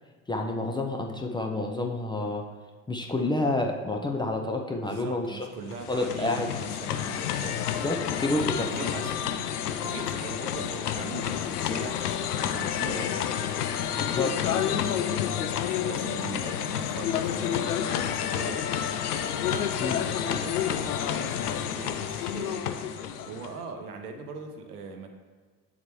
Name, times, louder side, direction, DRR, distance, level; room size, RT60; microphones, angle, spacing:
voice 1, 0.3-2.4 2.9-5.4 5.9-6.5 7.8-8.7 14.0-14.8 19.8-20.0, left 2 dB, 10° left, 2 dB, 0.7 m, -29 dB
voice 2, 4.8-7.6 8.4-13.3 15.8-18.7 19.4-22.8 23.2-25.1, right 4 dB, 75° right, 5 dB, 1.0 m, -41 dB
sound 1, 5.6-23.6, left 9 dB, 80° left, 0.6 m, -29 dB
8.0 x 7.3 x 3.1 m, 1.5 s
figure-of-eight pair, 65°, 45 cm